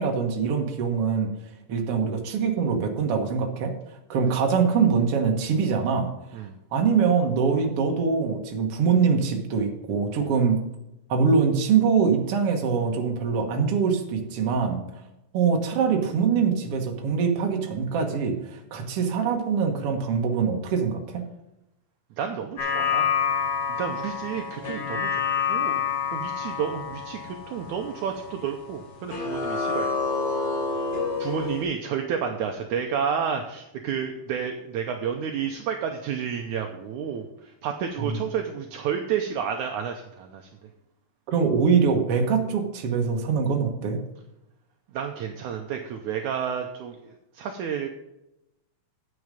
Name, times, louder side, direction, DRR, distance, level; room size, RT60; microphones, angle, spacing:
voice 1, 0.0-1.3 1.7-3.7 4.1-6.1 6.7-10.6 11.1-14.8 15.3-21.3 38.0-38.2 41.3-44.0, right 5 dB, 55° right, 3 dB, 1.8 m, -23 dB
voice 2, 22.2-23.1 23.7-25.2 25.5-25.8 26.1-29.9 31.2-40.7 44.9-47.9, right 7 dB, 80° right, 4 dB, 1.8 m, -31 dB
sound 1, 22.6-28.8 29.1-31.6, left 6 dB, 40° left, 3.7 m, -28 dB
9.7 x 8.0 x 5.1 m, 0.89 s
omnidirectional pair, 4.1 m